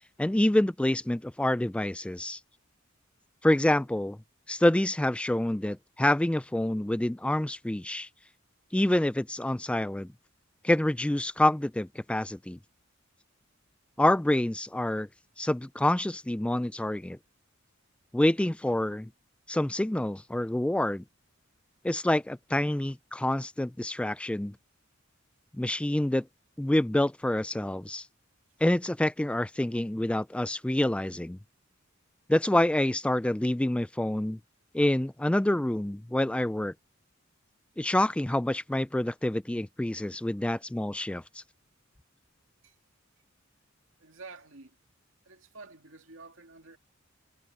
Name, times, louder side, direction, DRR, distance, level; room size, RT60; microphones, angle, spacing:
voice 1, 0.2-2.4 3.4-4.2 4.5-8.1 8.7-10.1 10.6-12.6 14.0-15.1 15.4-17.2 18.1-19.1 19.5-21.0 21.8-24.5 25.6-26.3 26.6-28.1 28.6-31.4 32.3-34.4 34.7-36.7 37.8-41.4, left 1 dB, 5° left, 0.3 m, -27 dB
voice 2, 40.3-40.6 42.6-42.8 44.0-44.8 45.2-46.8, right 3 dB, 75° right, 2.5 m, -50 dB
head